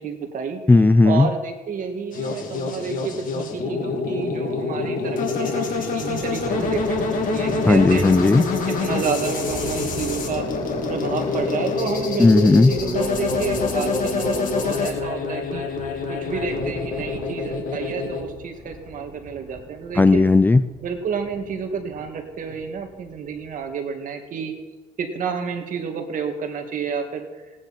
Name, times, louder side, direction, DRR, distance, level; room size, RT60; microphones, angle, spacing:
voice 1, 0.0-0.6 1.0-8.0 8.7-10.5 10.9-15.7 16.1-20.2 20.8-24.5 25.0-27.5, right 6 dB, 50° right, 4 dB, 2.2 m, -30 dB
voice 2, 0.7-1.3 7.7-8.5 12.2-12.7 20.0-20.6, left 3 dB, 10° left, 13 dB, 0.4 m, -14 dB
sound 1, 2.1-18.2, left 4 dB, 55° left, 2.5 m, -26 dB
Thunder, 6.0-23.7, equal, 15° right, 5.3 m, -39 dB
17.5 x 9.8 x 4.4 m, 1.2 s
cardioid pair, 110°, 17 cm